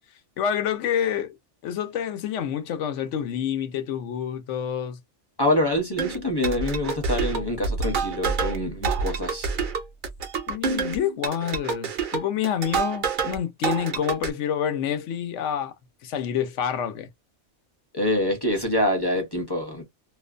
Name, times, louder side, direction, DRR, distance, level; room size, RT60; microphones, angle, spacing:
voice 1, 0.4-1.4 1.6-5.0 10.5-15.7 16.0-17.1, left 9 dB, 80° left, 0.9 m, -28 dB
voice 2, 5.4-9.5 17.9-19.8, left 1 dB, 25° left, 0.6 m, -25 dB
sound 1, 6.0-13.4 13.6-14.3, right 5 dB, 60° right, 0.6 m, -28 dB
2.5 x 2.1 x 2.4 m
omnidirectional pair, 1.2 m